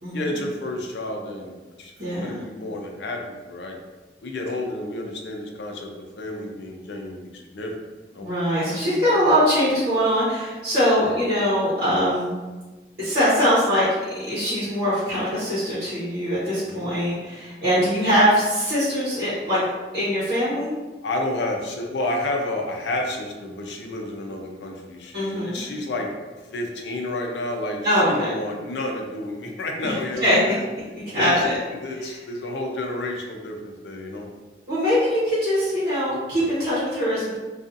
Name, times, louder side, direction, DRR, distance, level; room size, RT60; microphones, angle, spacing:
voice 1, 0.1-1.9 2.2-3.8 4.2-7.7 8.1-8.3 11.0-11.2 16.6-16.9 17.6-17.9 21.0-26.1 26.5-30.6 31.2-31.4 31.8-34.3, left 2 dB, 85° left, 2 dB, 0.5 m, -30 dB
voice 2, 2.0-2.3 8.2-12.3 13.0-14.0 14.3-19.6 19.9-20.7 25.1-25.6 27.8-28.3 29.8-29.9 30.2-30.4 31.1-31.6 34.7-37.4, equal, 55° right, -11 dB, 0.9 m, -22 dB
2.5 x 2.3 x 2.5 m, 1.2 s
head